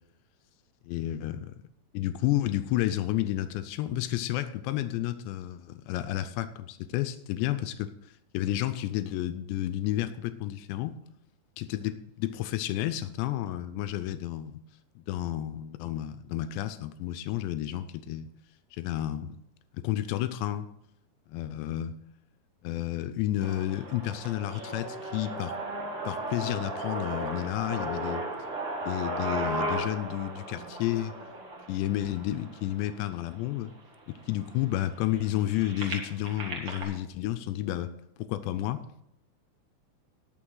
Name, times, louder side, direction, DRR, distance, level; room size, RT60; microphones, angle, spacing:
voice 1, 0.9-1.6 1.9-7.9 8.3-11.0 11.6-14.6 15.0-18.3 18.7-19.4 19.7-20.7 21.3-22.0 22.6-25.6 26.1-28.2 28.8-31.1 31.7-33.7 34.1-37.9 38.2-38.8, left 13 dB, 85° left, 11 dB, 2.6 m, -31 dB
sound 1, 23.4-33.4 34.0-34.1 34.4-36.8, right 1 dB, 60° right, 1.4 m, -36 dB
18.5 x 6.6 x 3.9 m, 0.80 s
omnidirectional pair, 5.6 m